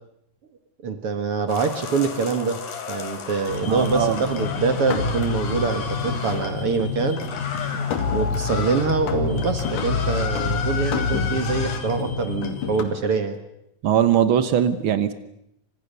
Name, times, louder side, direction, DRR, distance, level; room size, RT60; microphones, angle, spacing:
voice 1, 0.8-2.6 2.9-7.2 8.1-13.4, right 5 dB, 50° right, 7 dB, 2.1 m, -25 dB
sound 1, 1.5-6.5 7.2-8.9 9.3-11.8, left 6 dB, 85° left, 4.5 m, -33 dB
sound 2, 3.5-12.8, left 5 dB, 65° left, 3.8 m, -27 dB
voice 2, 3.7-4.2 13.8-15.1, right 9 dB, 80° right, 11 dB, 1.1 m, -20 dB
29.0 x 25.5 x 6.9 m, 0.79 s
omnidirectional pair, 4.0 m